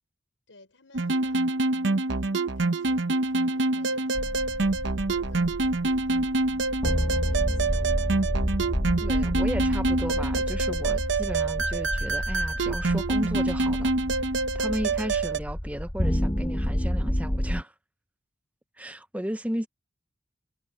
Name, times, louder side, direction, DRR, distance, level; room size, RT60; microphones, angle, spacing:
voice 1, 0.5-1.5 1.8-4.2 5.3-6.3 7.3-8.3, left 2 dB, 80° left, 5.9 m, -56 dB
sound 1, 0.9-15.4, right 2 dB, 70° right, 0.9 m, -26 dB
sound 2, 4.1-17.6, equal, 20° left, 1.3 m, -30 dB
voice 2, 9.0-13.9 14.5-17.7 18.8-19.7, equal, 10° right, 0.9 m, -34 dB
head